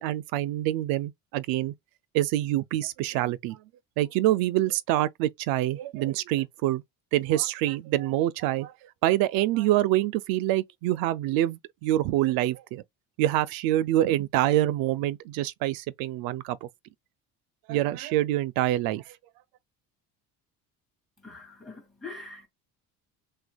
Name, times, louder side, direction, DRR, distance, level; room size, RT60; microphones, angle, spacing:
voice 1, 0.0-1.7 2.1-3.6 4.0-6.8 7.1-8.7 9.0-12.8 13.2-16.7 17.7-19.2, right 14 dB, 75° right, 0.5 m, -26 dB
voice 2, 21.2-22.5, left 3 dB, ahead, 2.2 m, -43 dB
6.1 x 2.3 x 2.3 m
cardioid pair, 175°, 36 cm